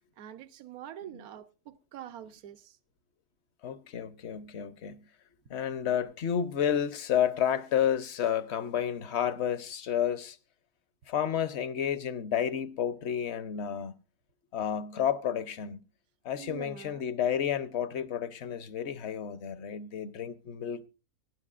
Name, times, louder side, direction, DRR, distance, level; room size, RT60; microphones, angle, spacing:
voice 1, 0.2-2.8 16.3-17.0, right 10 dB, 75° right, 1.3 m, -45 dB
voice 2, 3.6-5.0 5.5-10.4 11.1-13.9 14.5-15.8 16.2-20.8, left 9 dB, 55° left, 0.9 m, -31 dB
23.5 x 10.5 x 2.4 m
omnidirectional pair, 1.6 m